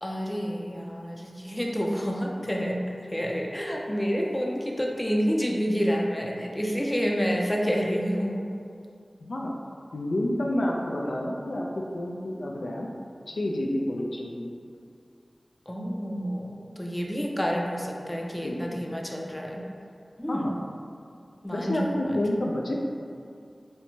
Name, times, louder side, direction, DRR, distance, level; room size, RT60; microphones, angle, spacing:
voice 1, 0.0-2.8 3.1-8.5 14.0-14.1 15.7-19.6 20.2-20.5 21.4-21.9, equal, 20° left, -1 dB, 0.4 m, -28 dB
voice 2, 9.2-9.6 9.9-12.9 13.3-14.5 18.4-18.8 20.3-20.6 21.5-22.8, left 1 dB, 75° left, -1 dB, 0.3 m, -29 dB
4.3 x 2.1 x 2.7 m, 2.3 s
cardioid pair, 40°, 0 cm